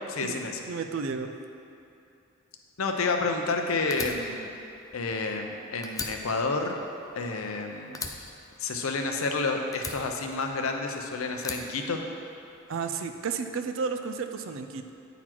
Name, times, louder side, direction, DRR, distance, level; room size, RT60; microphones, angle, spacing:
voice 1, 0.1-0.6 2.8-4.5 4.9-6.8 7.1-8.0 8.6-12.0, left 3 dB, 80° left, 4 dB, 0.7 m, -30 dB
voice 2, 0.7-1.3 12.7-14.9, right 5 dB, 65° right, 7 dB, 0.4 m, -32 dB
Fire, 3.9-5.5 5.8-7.6 7.9-9.3 9.7-10.9 11.4-12.6, left 4 dB, 15° left, 0.4 m, -39 dB
9.0 x 4.1 x 4.5 m, 2.6 s
head